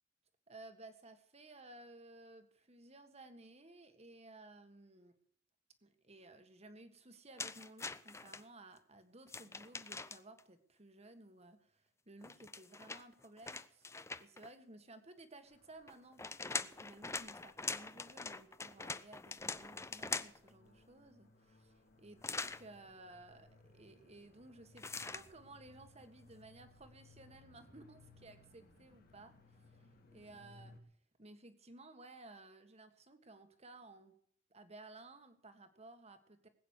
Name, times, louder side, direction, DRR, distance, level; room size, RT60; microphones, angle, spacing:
voice 1, 0.5-5.1 5.8-29.8 30.1-30.8 31.2-34.2 34.5-36.5, right 2 dB, 35° right, 8 dB, 1.8 m, -57 dB
sound 1, 7.4-8.4 9.3-10.4 12.2-14.5 15.9-20.5 22.2-22.6 24.8-25.3, left 4 dB, 15° left, 0.6 m, -43 dB
sound 2, 15.4-30.8, left 2 dB, 55° left, 2.8 m, -64 dB
20.0 x 9.1 x 6.6 m, 0.64 s
head